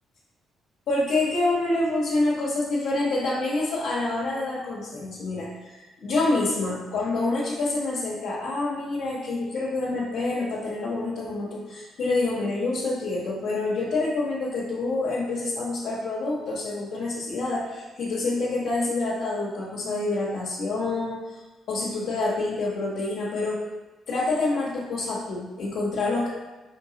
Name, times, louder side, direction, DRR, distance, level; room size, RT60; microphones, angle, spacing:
voice 1, 0.9-21.2 21.7-23.6 24.1-26.3, left 2 dB, 70° left, -7 dB, 1.0 m, -27 dB
4.6 x 3.5 x 2.8 m, 1.1 s
cardioid pair, 100°, 0 cm